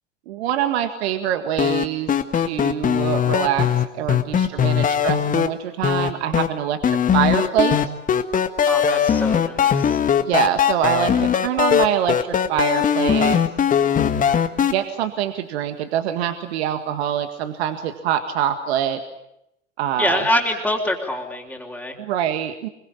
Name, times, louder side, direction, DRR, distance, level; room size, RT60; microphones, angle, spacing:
voice 1, 0.3-3.7 3.9-7.8 10.2-13.4 14.6-19.0 19.8-20.2 22.0-22.7, right 10 dB, 55° right, 9 dB, 1.9 m, -24 dB
sound 1, 1.6-5.5 5.8-6.5 6.8-14.7, left 8 dB, 20° left, 1.7 m, -19 dB
voice 2, 8.7-10.0 20.0-22.0, left 1 dB, ahead, -5 dB, 3.8 m, -25 dB
25.0 x 23.5 x 8.7 m, 0.81 s
figure-of-eight pair, 95°, 37 cm